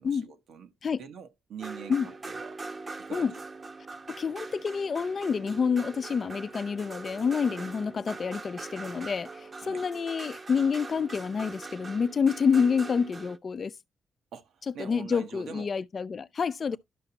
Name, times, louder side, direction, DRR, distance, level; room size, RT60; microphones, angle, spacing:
voice 1, 0.0-0.7 1.0-2.6 3.0-3.3 7.5-7.7 9.6-9.9 14.3-15.7 16.7-16.8, right 7 dB, 80° right, 1.2 m, -44 dB
sound 1, 1.6-13.4, right 3 dB, 40° right, 0.9 m, -42 dB
voice 2, 4.2-13.7 14.8-16.8, left 6 dB, 50° left, 0.5 m, -28 dB
11.5 x 5.8 x 2.8 m
supercardioid pair, 60°, 0 cm